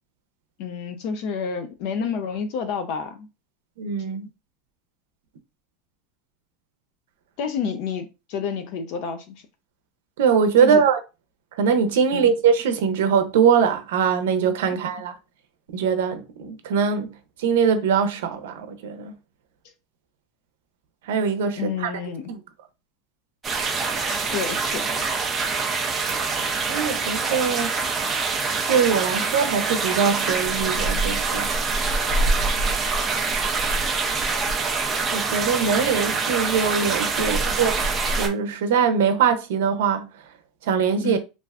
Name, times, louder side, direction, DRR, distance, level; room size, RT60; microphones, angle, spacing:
voice 1, 0.6-3.3 7.4-9.5 10.6-10.8 12.1-12.3 21.6-22.3 24.3-24.9 41.0-41.2, left 6 dB, 45° left, 0.4 m, -29 dB
voice 2, 3.8-4.3 10.2-11.0 11.6-15.1 15.7-17.1 17.4-19.1 21.1-21.9 22.3-22.4 26.7-27.7 28.7-31.5 35.1-40.1 40.6-41.2, right 6 dB, 90° right, 0.5 m, -22 dB
sound 1, 23.4-38.3, right 4 dB, 15° right, 0.4 m, -25 dB
3.3 x 2.4 x 2.3 m
supercardioid pair, 175°, 0 cm